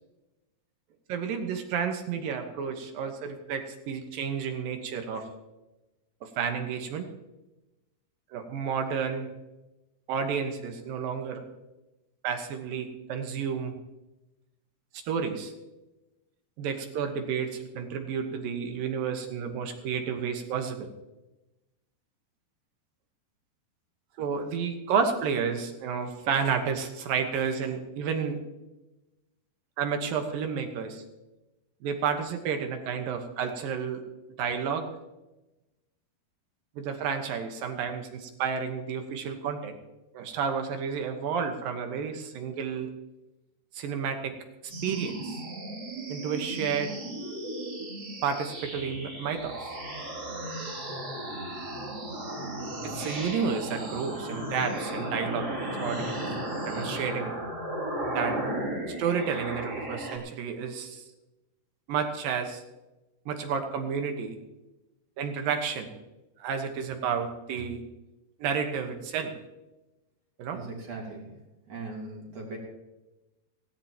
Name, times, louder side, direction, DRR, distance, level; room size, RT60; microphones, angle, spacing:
voice 1, 1.1-5.3 6.2-7.1 8.3-9.3 10.1-11.4 12.2-13.8 15.1-15.5 16.6-20.9 24.2-28.4 29.8-31.0 31.8-34.0 34.4-34.9 36.8-39.7 40.1-42.9 43.7-44.4 44.8-45.4 46.1-47.4 48.2-49.8 52.8-56.1 56.5-57.4 58.1-58.4 58.9-61.0 61.9-62.6 63.3-64.4 65.2-65.9 66.4-67.8 68.4-69.3 70.4-70.6, right 6 dB, 70° right, 5 dB, 2.7 m, -31 dB
sound 1, 44.7-60.2, right 1 dB, 25° right, 2.7 m, -35 dB
voice 2, 70.5-71.3 71.7-72.6, right 3 dB, 40° right, -1 dB, 3.7 m, -39 dB
17.5 x 16.5 x 3.0 m, 1.0 s
omnidirectional pair, 4.6 m